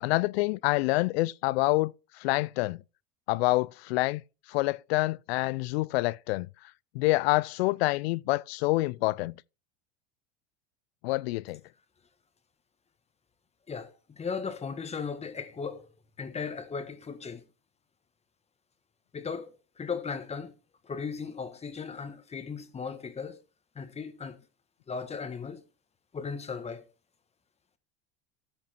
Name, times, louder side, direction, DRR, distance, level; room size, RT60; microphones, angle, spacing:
voice 1, 0.0-2.8 3.3-4.2 4.5-6.5 6.9-9.4 11.0-11.6, left 21 dB, 80° left, 0.5 m, -27 dB
voice 2, 13.7-15.9 16.2-17.4 19.1-19.5 19.8-20.5 20.9-23.4 23.7-24.4 24.9-25.6 26.1-26.8, left 5 dB, 20° left, 1.5 m, -36 dB
13.5 x 5.5 x 4.4 m
supercardioid pair, 120°, 31 cm